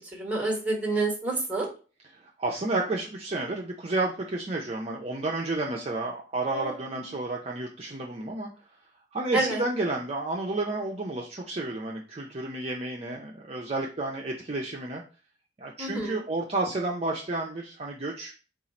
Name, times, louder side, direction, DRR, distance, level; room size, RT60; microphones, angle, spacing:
voice 1, 0.1-1.7 6.5-7.1 9.3-9.6 15.8-16.2, right 2 dB, 5° right, -1 dB, 1.2 m, -29 dB
voice 2, 2.4-8.5 9.1-15.0 15.6-18.3, right 2 dB, 35° right, -1 dB, 0.5 m, -31 dB
4.4 x 2.4 x 4.0 m, 0.36 s
head